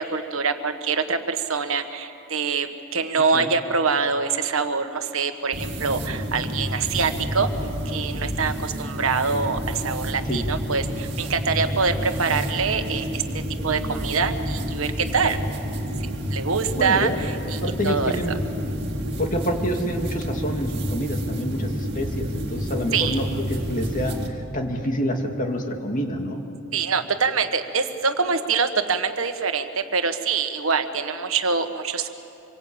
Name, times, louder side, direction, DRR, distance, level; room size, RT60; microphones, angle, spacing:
voice 1, 0.0-7.5 7.8-15.4 16.3-18.2 22.9-23.2 26.7-32.1, right 5 dB, 75° right, 7 dB, 1.4 m, -25 dB
sound 1, 5.5-24.3, equal, 55° right, 2.3 m, -29 dB
voice 2, 16.8-17.2 17.6-18.4 19.2-26.4, equal, 40° left, 3 dB, 2.3 m, -27 dB
26.0 x 23.0 x 8.7 m, 2.8 s
head